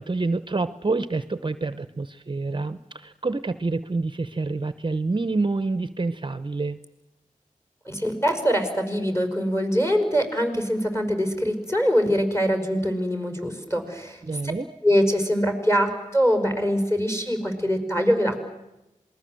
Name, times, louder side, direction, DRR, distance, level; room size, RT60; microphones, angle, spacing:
voice 1, 0.0-6.8 14.2-14.7, right 3 dB, 35° right, 14 dB, 0.8 m, -27 dB
voice 2, 7.9-14.2 14.8-18.4, equal, 20° left, 7 dB, 5.4 m, -23 dB
27.0 x 20.5 x 7.8 m, 0.94 s
wide cardioid pair, 60°, 14 cm